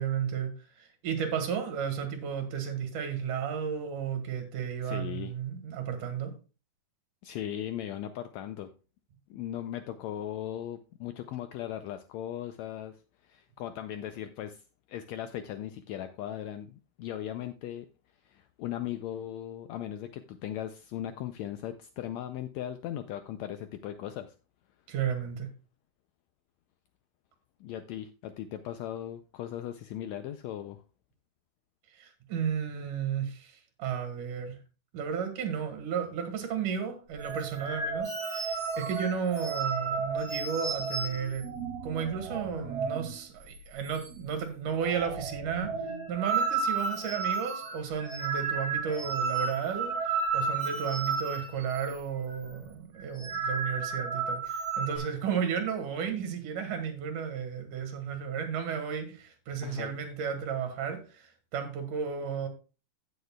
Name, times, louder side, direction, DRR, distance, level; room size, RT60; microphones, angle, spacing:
voice 1, 0.0-6.3 24.9-25.5 31.9-34.6 34.9-41.5 41.8-45.7 46.1-62.5, right 7 dB, 75° right, 3.1 m, -33 dB
voice 2, 4.8-5.3 7.2-8.7 9.3-13.0 13.2-14.6 14.9-17.9 18.3-24.3 27.6-30.8 59.6-60.0, left 11 dB, 80° left, 1.6 m, -38 dB
sound 1, 37.2-43.1 43.4-43.6 43.8-44.4 44.7-52.0 52.3-52.5 53.0-55.0, right 5 dB, 55° right, 3.3 m, -33 dB
16.0 x 6.6 x 2.3 m
omnidirectional pair, 3.7 m